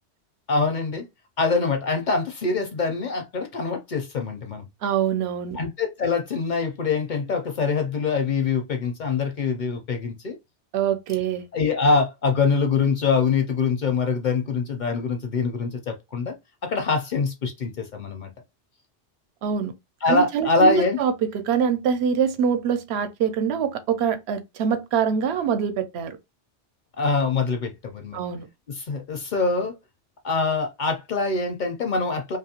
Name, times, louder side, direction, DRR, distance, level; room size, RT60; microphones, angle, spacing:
voice 1, 0.5-1.1 1.4-4.7 5.5-10.4 11.5-16.4 16.6-18.3 20.0-21.0 27.0-28.2 28.7-29.7 30.2-32.4, left 4 dB, 55° left, 0.5 m, -24 dB
voice 2, 4.8-5.6 10.7-11.5 19.4-19.7 20.1-26.2 28.1-28.5, right 7 dB, 70° right, 0.8 m, -24 dB
2.7 x 2.4 x 2.8 m
omnidirectional pair, 1.2 m